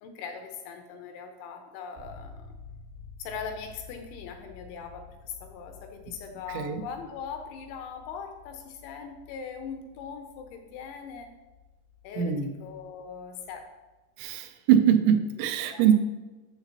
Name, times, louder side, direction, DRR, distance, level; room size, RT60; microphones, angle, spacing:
voice 1, 0.0-2.5 3.2-11.3 12.0-13.7 15.6-15.9, left 6 dB, 85° left, 4 dB, 2.8 m, -40 dB
sound 1, 2.0-13.9, left 5 dB, 70° right, 0.8 m, -51 dB
voice 2, 6.5-6.8 12.2-12.5 14.2-15.9, right 9 dB, 85° right, 5 dB, 2.6 m, -23 dB
7.9 x 7.0 x 2.8 m, 1.2 s
omnidirectional pair, 5.7 m